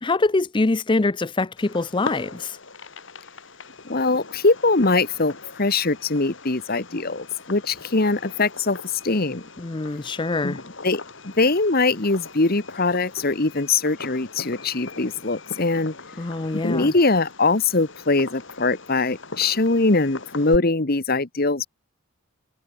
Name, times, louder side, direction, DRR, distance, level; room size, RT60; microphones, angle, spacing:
voice 1, 0.0-2.6 9.6-10.6 16.2-16.9, left 3 dB, 25° left, 0.5 m, -24 dB
Fireworks, 1.6-20.6, left 3 dB, 60° left, 4.0 m, -40 dB
voice 2, 3.9-8.8 9.0-9.4 10.4-10.6 10.8-15.9 16.6-21.7, left 3 dB, 45° left, 1.4 m, -22 dB
head